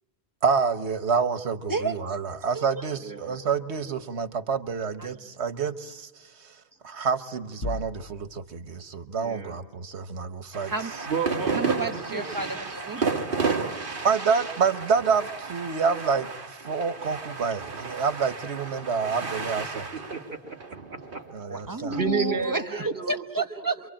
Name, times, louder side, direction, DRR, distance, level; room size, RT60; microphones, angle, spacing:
voice 1, 0.4-6.6 6.8-10.7 13.1-13.7 14.0-19.9 21.3-22.0, right 5 dB, 85° right, 11 dB, 1.4 m, -28 dB
voice 2, 3.0-3.4 9.2-9.6 11.1-12.3 19.9-20.4 20.9-21.2 21.5-21.6 21.9-23.2 23.6-23.9, right 5 dB, 65° right, -1 dB, 2.5 m, -32 dB
sound 1, 7.6-8.6, left 2 dB, 60° left, 2.1 m, -35 dB
sound 2, 10.5-22.0, right 4 dB, 50° right, 1.6 m, -32 dB
voice 3, 11.5-13.1 21.5-23.9, right 3 dB, 20° right, 7 dB, 1.0 m, -31 dB
27.5 x 24.0 x 8.8 m, 1.1 s
omnidirectional pair, 1.1 m